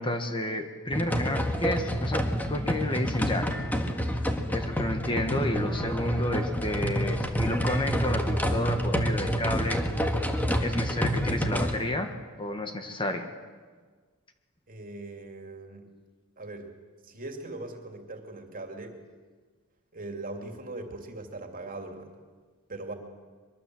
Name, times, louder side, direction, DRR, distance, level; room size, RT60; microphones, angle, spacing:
voice 1, 0.0-3.5 4.5-9.8 10.6-13.3, left 1 dB, 25° left, 6 dB, 1.6 m, -31 dB
sound 1, 0.9-11.8, equal, 10° left, 1.7 m, -28 dB
voice 2, 14.7-15.9 16.4-16.7 17.0-19.0 19.9-22.2 22.7-22.9, right 2 dB, 40° right, 4 dB, 2.8 m, -40 dB
23.0 x 22.5 x 7.8 m, 1.5 s
head